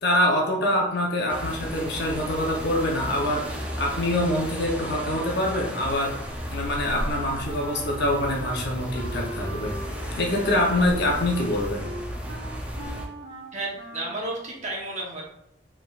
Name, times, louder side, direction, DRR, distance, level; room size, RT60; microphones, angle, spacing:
voice 1, 0.0-6.2 6.5-9.7 10.2-11.9, left 1 dB, 65° left, -1 dB, 0.8 m, -25 dB
sound 1, 1.3-13.1, equal, 10° right, 0.6 m, -34 dB
Wind instrument woodwind instrument, 6.9-8.6 8.9-14.3, right 2 dB, 80° right, 0.9 m, -41 dB
voice 2, 13.5-15.2, right 2 dB, 40° right, -2 dB, 1.1 m, -32 dB
4.4 x 3.4 x 2.5 m, 0.81 s
head